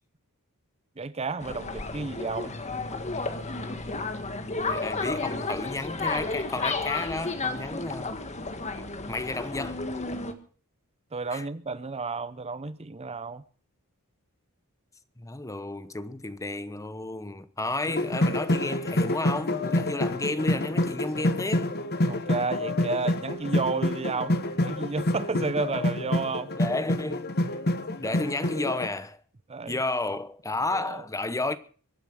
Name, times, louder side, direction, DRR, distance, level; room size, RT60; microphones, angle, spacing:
voice 1, 1.0-2.5 11.1-13.4 22.0-26.5 29.5-29.8 30.7-31.0, right 4 dB, 30° right, 0.7 m, -32 dB
sound 1, 1.4-10.3, left 3 dB, 30° left, 1.7 m, -32 dB
voice 2, 4.6-8.2 8.8-9.8 11.3-11.5 15.2-21.7 26.5-27.3 28.0-29.2 29.7-31.6, left 2 dB, 15° left, 0.9 m, -32 dB
sound 2, 17.9-28.9, left 1 dB, 45° left, 1.4 m, -27 dB
23.0 x 9.2 x 6.4 m
head